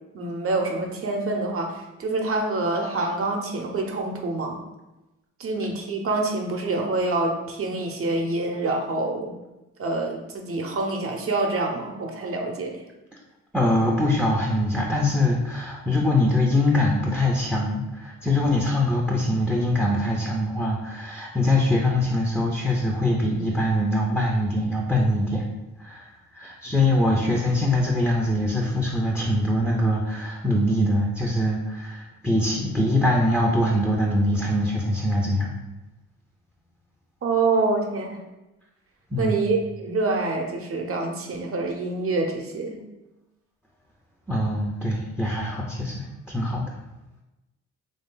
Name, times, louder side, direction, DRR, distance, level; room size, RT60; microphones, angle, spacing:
voice 1, 0.1-4.6 5.4-9.3 9.8-12.8 37.2-38.2 39.2-42.8, right 3 dB, 50° right, 2 dB, 0.7 m, -26 dB
voice 2, 13.5-25.4 25.8-35.5 39.1-39.5 44.3-46.8, left 1 dB, 5° right, -1 dB, 0.5 m, -23 dB
3.3 x 2.7 x 3.7 m, 1.0 s
cardioid pair, 90°, 30 cm